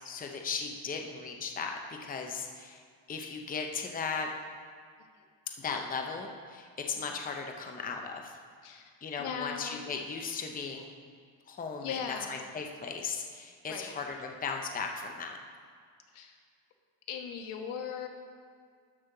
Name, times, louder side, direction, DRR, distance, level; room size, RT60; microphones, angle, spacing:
voice 1, 0.0-2.8 3.1-4.3 5.6-8.4 9.0-10.9 11.5-15.4, left 5 dB, 20° left, 3 dB, 0.6 m, -37 dB
voice 2, 9.2-9.9 11.8-12.4 13.7-13.9 16.1-16.4 17.1-18.1, left 7 dB, 80° left, 4 dB, 1.2 m, -38 dB
12.5 x 6.2 x 3.8 m, 2.1 s
cardioid pair, 145°, 49 cm